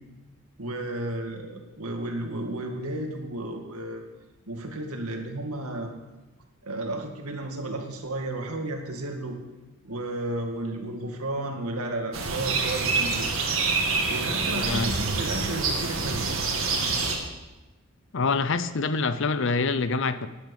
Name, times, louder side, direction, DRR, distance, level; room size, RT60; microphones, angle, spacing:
voice 1, 0.6-4.0 4.5-5.9 6.6-9.4 9.8-13.3 14.1-16.3, right 1 dB, 80° right, 3 dB, 2.0 m, -33 dB
sound 1, 12.1-17.2, right 4 dB, 65° right, 2.0 m, -26 dB
voice 2, 14.5-14.9 18.1-20.3, left 4 dB, 55° left, 13 dB, 0.6 m, -26 dB
12.5 x 10.5 x 5.5 m, 1.1 s
head